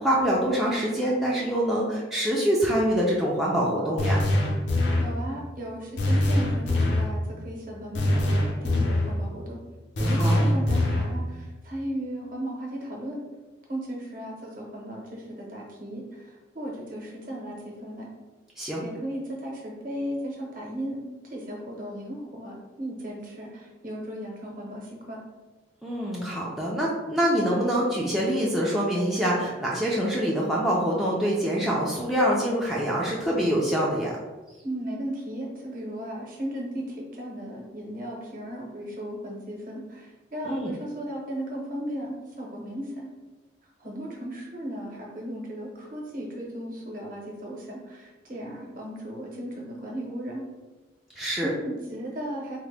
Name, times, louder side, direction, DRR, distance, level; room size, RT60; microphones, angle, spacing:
voice 1, 0.0-4.2 10.1-10.5 18.6-18.8 25.8-34.2 40.4-40.7 51.2-51.5, equal, ahead, -6 dB, 0.4 m, -25 dB
sound 1, 4.0-5.2 6.0-7.1 7.9-9.2 10.0-11.2, left 1 dB, 75° left, 0.6 m, -23 dB
voice 2, 5.0-9.6 10.0-13.2 13.7-18.1 18.8-21.0 21.3-25.2 34.6-43.1 43.8-50.4 51.2-52.6, equal, 50° right, -2 dB, 0.9 m, -36 dB
3.7 x 2.1 x 3.3 m, 1.2 s
head